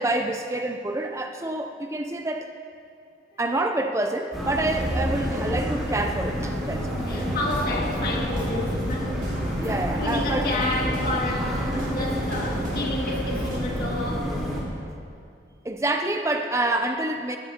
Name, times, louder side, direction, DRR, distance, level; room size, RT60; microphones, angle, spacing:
voice 1, 0.0-2.5 3.4-6.9 9.6-10.5 15.6-17.4, right 2 dB, 15° right, 5 dB, 0.4 m, -27 dB
sound 1, 4.3-14.6, equal, ahead, 3.6 m, -29 dB
voice 2, 7.0-9.2 10.0-14.5, left 2 dB, 50° left, -2 dB, 2.1 m, -30 dB
sound 2, 7.1-13.6, equal, 45° right, 2.3 m, -33 dB
19.5 x 14.0 x 2.9 m, 2.3 s
head